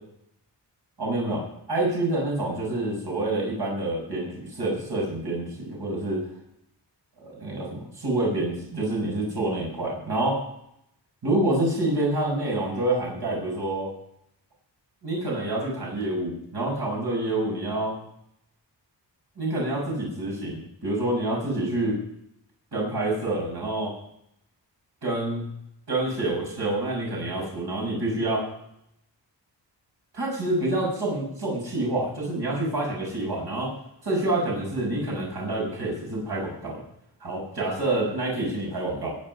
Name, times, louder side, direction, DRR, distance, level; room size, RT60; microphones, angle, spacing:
voice 1, 1.0-6.2 7.2-10.4 11.2-13.9 15.0-18.0 19.4-22.0 22.7-23.9 25.0-25.5 25.9-28.5 30.1-33.7 34.0-36.8 37.2-39.2, right 2 dB, 60° right, -3 dB, 6.4 m, -27 dB
21.0 x 9.2 x 5.5 m, 0.76 s
wide cardioid pair, 115°, 43 cm